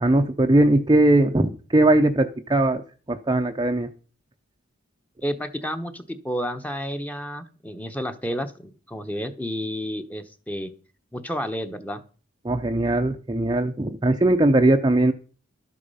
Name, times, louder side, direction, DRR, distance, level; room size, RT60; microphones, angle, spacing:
voice 1, 0.0-2.8 3.1-3.9 12.4-15.1, right 1 dB, 20° right, 5 dB, 0.6 m, -20 dB
voice 2, 5.2-10.7 11.1-12.0, equal, 5° left, 8 dB, 0.9 m, -31 dB
12.5 x 8.5 x 5.6 m, 0.40 s
head